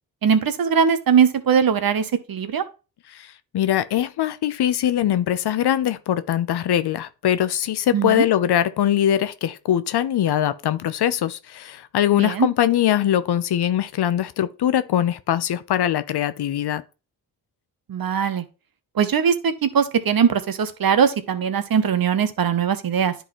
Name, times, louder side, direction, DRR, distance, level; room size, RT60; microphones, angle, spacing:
voice 1, 0.2-2.6 7.9-8.2 12.1-12.5 17.9-18.4 19.0-23.1, right 7 dB, 55° right, 0.9 m, -20 dB
voice 2, 3.5-16.8, left 11 dB, 60° left, 0.6 m, -22 dB
10.0 x 3.9 x 3.1 m
supercardioid pair, 45°, 44 cm